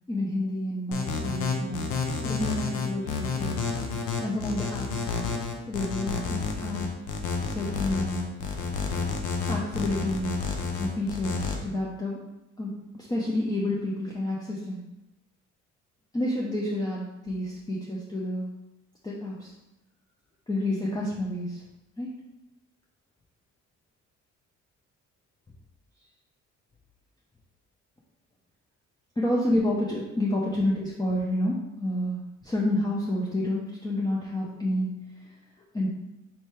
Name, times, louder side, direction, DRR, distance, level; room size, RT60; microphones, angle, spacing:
voice 1, 0.1-1.9 2.2-3.6 4.2-5.2 5.7-6.9 7.5-8.4 9.5-10.4 10.8-12.2 12.6-14.8 16.1-18.5 19.0-19.5 20.5-21.6 22.0-22.1 29.2-35.0 35.7-35.9, left 1 dB, 15° left, -4 dB, 0.6 m, -29 dB
sound 1, 0.9-11.5, left 5 dB, 80° left, 0.7 m, -30 dB
4.5 x 2.7 x 3.3 m, 0.92 s
cardioid pair, 90°, 30 cm